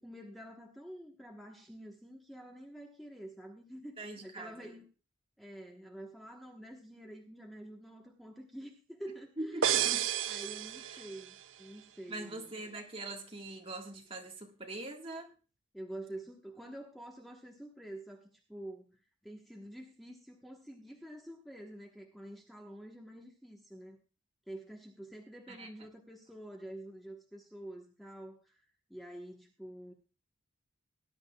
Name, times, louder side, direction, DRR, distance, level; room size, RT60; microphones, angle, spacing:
voice 1, 0.0-4.9 5.4-10.0 10.3-12.5 15.7-19.0 19.2-24.0 24.5-28.6 28.9-29.9, right 1 dB, ahead, 0 dB, 1.2 m, -48 dB
voice 2, 4.0-4.7 9.4-10.0 10.9-11.1 12.1-15.3 25.5-25.7, right 2 dB, 25° right, 2 dB, 1.7 m, -43 dB
sound 1, 9.6-11.4, right 10 dB, 65° right, 0.5 m, -31 dB
19.5 x 10.5 x 2.3 m, 0.34 s
head